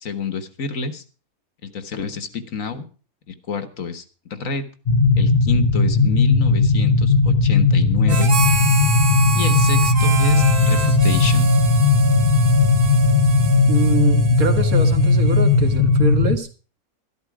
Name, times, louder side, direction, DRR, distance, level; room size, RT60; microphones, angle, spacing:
voice 1, 0.0-1.0 1.6-2.9 3.3-4.7 5.2-8.3 9.3-11.5, left 5 dB, 60° left, 10 dB, 1.6 m, -28 dB
sound 1, 4.9-16.4, left 3 dB, 40° left, 1.0 m, -16 dB
Harmonica, 8.1-15.8, right 5 dB, 40° right, 1.2 m, -28 dB
voice 2, 13.7-16.5, right 3 dB, 65° right, 6 dB, 2.3 m, -25 dB
13.0 x 12.5 x 4.8 m, 0.36 s
omnidirectional pair, 1.6 m